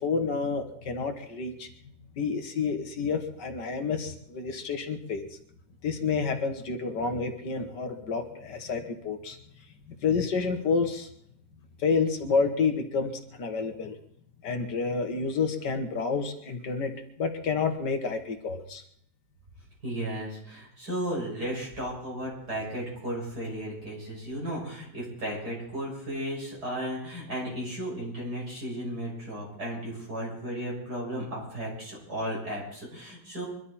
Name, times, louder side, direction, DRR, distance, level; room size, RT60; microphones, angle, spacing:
voice 1, 0.0-1.7 2.2-5.3 5.8-9.4 10.0-11.1 11.8-13.1 13.4-13.9 14.4-16.9 17.2-18.8, left 5 dB, 70° left, 6 dB, 1.9 m, -29 dB
voice 2, 19.8-33.4, equal, 60° right, -3 dB, 6.6 m, -34 dB
23.5 x 12.0 x 4.3 m, 0.69 s
omnidirectional pair, 1.9 m